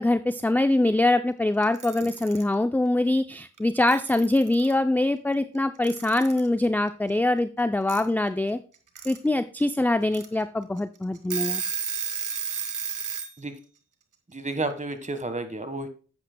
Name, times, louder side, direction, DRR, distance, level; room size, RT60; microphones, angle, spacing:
voice 1, 0.0-8.6 9.0-11.6, left 2 dB, 5° left, 10 dB, 0.4 m, -23 dB
Alarm / Clock, 1.6-2.4 3.6-3.7 3.9-4.7 5.8-6.5 7.9-8.0 8.7-9.2 9.6-9.7 10.1-10.3 10.8-10.9 11.2-13.3, right 7 dB, 75° right, 1.3 m, -32 dB
voice 2, 14.3-15.9, right 2 dB, 25° right, 9 dB, 1.4 m, -31 dB
11.0 x 8.7 x 2.2 m, 0.37 s
cardioid pair, 55°, 31 cm